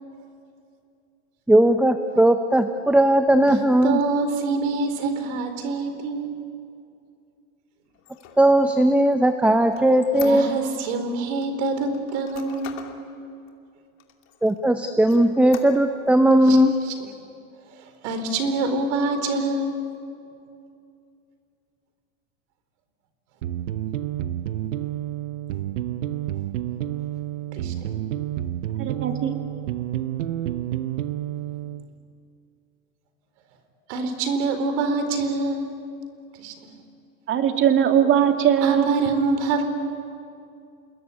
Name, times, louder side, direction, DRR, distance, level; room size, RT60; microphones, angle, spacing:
voice 1, 1.5-4.0 8.4-10.5 14.4-16.7, right 1 dB, 5° right, 8 dB, 0.8 m, -18 dB
voice 2, 3.5-6.3 10.2-12.8 16.5-16.6 16.9-17.0 17.7-19.8 27.5-27.9 33.9-35.7 36.4-36.5 38.6-39.7, right 3 dB, 65° right, 8 dB, 4.3 m, -26 dB
Squeak, 7.9-11.0 11.4-13.0 13.5-13.6 14.0-14.6 15.0-16.1, left 11 dB, 45° left, 2.9 m, -42 dB
sound 1, 23.4-31.9, right 12 dB, 80° right, 1.1 m, -29 dB
voice 3, 28.8-29.3 37.3-38.9, right 9 dB, 35° right, 5 dB, 2.5 m, -20 dB
28.0 x 20.5 x 9.7 m, 2.5 s
supercardioid pair, 120°, 37 cm